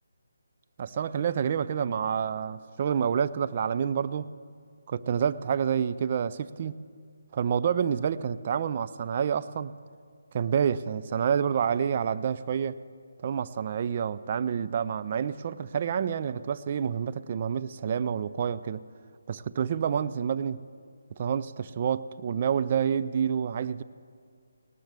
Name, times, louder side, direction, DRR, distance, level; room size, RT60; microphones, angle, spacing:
voice 1, 0.8-4.3 4.9-6.8 7.3-9.7 10.3-12.8 13.2-18.8 19.3-20.6 21.2-23.8, right 7 dB, 35° right, 13 dB, 0.4 m, -28 dB
19.0 x 18.0 x 3.4 m, 2.1 s
figure-of-eight pair, 150°, 0 cm